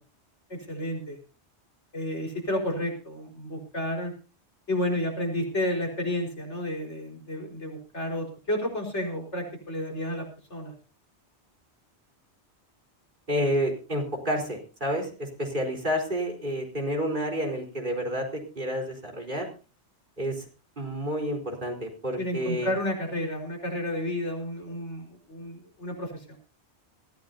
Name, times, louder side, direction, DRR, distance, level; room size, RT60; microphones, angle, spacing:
voice 1, 0.5-1.2 1.9-4.1 4.7-10.7 22.2-26.4, left 1 dB, 85° left, 1 dB, 4.9 m, -31 dB
voice 2, 13.3-19.5 20.2-20.4 20.8-22.7, equal, 45° right, 1 dB, 4.4 m, -29 dB
22.5 x 14.5 x 2.7 m, 0.34 s
omnidirectional pair, 1.2 m